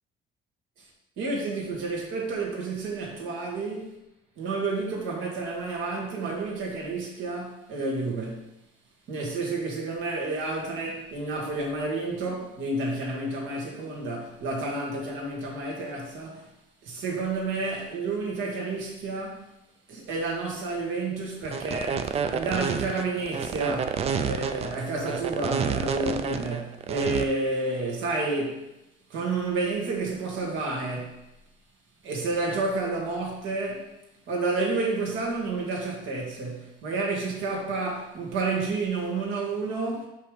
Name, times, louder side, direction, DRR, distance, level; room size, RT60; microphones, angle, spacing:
voice 1, 1.2-4.0 4.4-8.5 9.1-16.4 16.8-19.5 19.9-28.6 29.1-31.2 32.0-33.9 34.3-40.1, right 3 dB, 75° right, 2.4 m, -30 dB
sound 1, 21.5-27.2, right 7 dB, 30° right, 0.4 m, -29 dB
5.9 x 5.7 x 5.2 m
cardioid pair, 165°, 20 cm